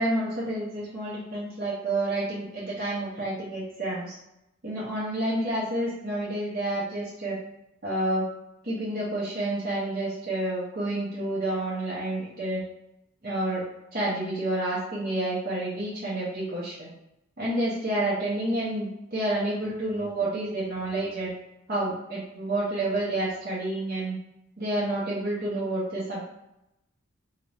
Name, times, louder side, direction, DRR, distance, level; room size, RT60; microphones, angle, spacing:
voice 1, 0.0-4.2 4.6-7.4 7.8-8.3 8.6-12.6 13.2-13.6 13.9-16.9 17.4-21.3 21.7-24.2 24.6-26.2, right 1 dB, 45° right, -8 dB, 0.8 m, -29 dB
2.9 x 2.6 x 3.2 m, 0.87 s
head